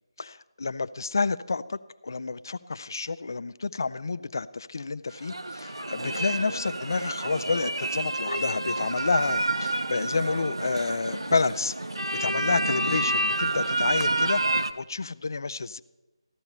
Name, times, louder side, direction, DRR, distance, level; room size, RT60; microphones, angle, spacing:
voice 1, 0.2-11.7 12.1-14.4 14.8-15.8, left 4 dB, 45° left, 15 dB, 0.4 m, -29 dB
sound 1, 5.1-14.7, right 2 dB, 65° right, 0.8 m, -29 dB
15.0 x 13.0 x 4.3 m, 1.1 s
figure-of-eight pair, 155°, 3 cm